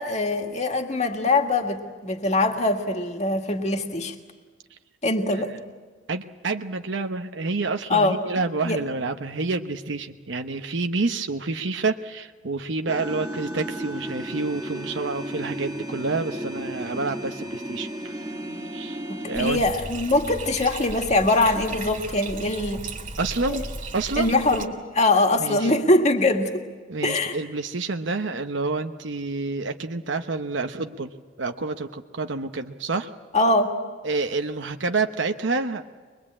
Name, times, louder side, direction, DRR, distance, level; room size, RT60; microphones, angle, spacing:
voice 1, 0.0-4.2 5.0-5.5 7.9-8.2 8.6-8.8 19.1-22.8 23.5-23.6 24.2-24.7 24.9-26.5 27.0-27.4 33.3-33.8, left 2 dB, 35° left, 4 dB, 1.8 m, -22 dB
voice 2, 6.1-18.1 18.7-19.0 19.3-19.6 23.2-23.7 23.9-24.3 25.4-25.7 26.9-31.1 31.4-33.1 34.0-35.8, right 3 dB, 75° right, 6 dB, 0.9 m, -28 dB
sound 1, 12.9-19.5, right 1 dB, 20° right, 1.4 m, -34 dB
Bathtub (filling or washing), 19.3-24.7, right 3 dB, 45° right, 2.1 m, -35 dB
23.5 x 21.5 x 8.6 m, 1.5 s
head